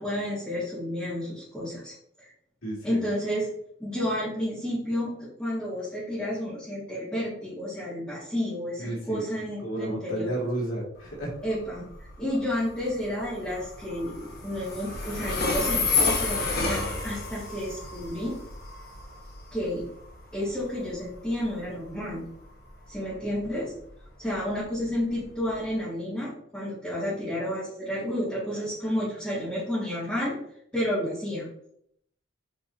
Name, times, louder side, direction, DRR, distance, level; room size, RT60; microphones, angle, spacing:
voice 1, 0.0-1.9 2.2-2.3 2.8-3.5 3.8-10.3 11.4-11.9 12.2-18.4 19.5-19.9 20.3-22.2 22.9-23.7 24.2-30.4 30.7-31.5, equal, 5° left, -12 dB, 2.5 m, -31 dB
voice 2, 2.6-3.0 8.8-9.3 9.6-11.3, right 1 dB, 80° left, -4 dB, 2.8 m, -32 dB
Train, 11.0-25.7, left 3 dB, 50° left, 1.4 m, -32 dB
8.5 x 4.5 x 2.9 m, 0.69 s
head